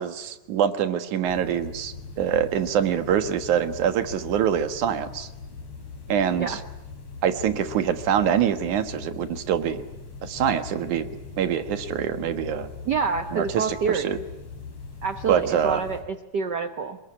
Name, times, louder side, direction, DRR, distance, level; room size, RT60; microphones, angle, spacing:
voice 1, 0.0-5.3 6.1-6.6 7.2-9.8 10.2-11.1 11.4-12.7 13.3-14.2 15.3-15.8, right 9 dB, 90° right, 9 dB, 3.0 m, -25 dB
sound 1, 1.2-16.0, left 4 dB, 60° left, 6.2 m, -40 dB
voice 2, 12.8-14.2 15.0-17.0, right 5 dB, 60° right, 9 dB, 1.1 m, -27 dB
26.0 x 22.0 x 9.9 m, 1.0 s
omnidirectional pair, 3.4 m